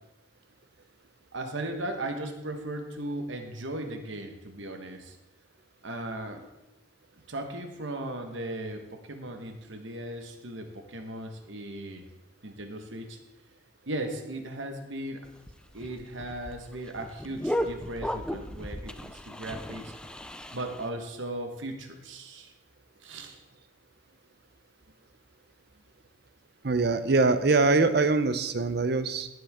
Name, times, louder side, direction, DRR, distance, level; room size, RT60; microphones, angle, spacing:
voice 1, 1.3-5.2 5.8-6.4 7.3-12.0 12.4-13.2 13.9-15.2 15.7-19.9 20.5-22.5 23.0-23.4, right 1 dB, 70° right, 5 dB, 1.4 m, -37 dB
sound 1, 15.2-20.9, equal, 5° left, 0.4 m, -35 dB
voice 2, 26.6-29.3, right 3 dB, 50° right, 12 dB, 0.7 m, -23 dB
17.0 x 7.9 x 3.6 m, 0.96 s
head